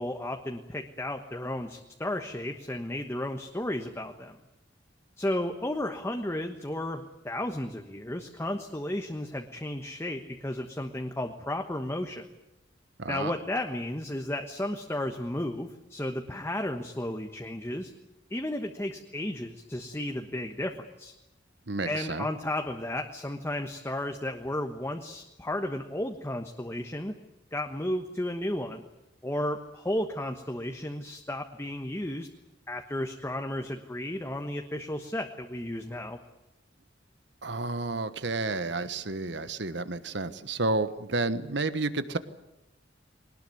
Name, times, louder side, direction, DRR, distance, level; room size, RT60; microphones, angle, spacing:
voice 1, 0.0-4.4 5.2-12.2 13.1-17.9 18.3-21.1 21.8-27.1 27.5-28.8 29.2-32.3 32.7-36.2, left 1 dB, 15° left, 4 dB, 1.2 m, -33 dB
voice 2, 13.0-13.3 21.7-22.3 37.4-42.2, right 3 dB, 65° right, 12 dB, 1.4 m, -31 dB
21.5 x 19.5 x 9.4 m, 0.94 s
head